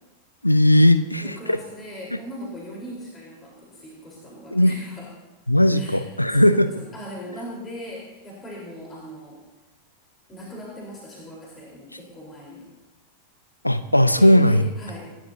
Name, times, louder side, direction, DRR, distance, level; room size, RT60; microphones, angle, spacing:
voice 1, 0.4-1.6 4.5-4.7 5.5-6.7 13.6-14.7, left 1 dB, 85° left, 12 dB, 0.6 m, -17 dB
voice 2, 1.2-5.1 5.7-9.4 10.3-12.7 14.1-15.1, equal, 20° left, -3 dB, 4.2 m, -39 dB
28.5 x 12.0 x 2.8 m, 1.1 s
figure-of-eight pair, 90°, 0 cm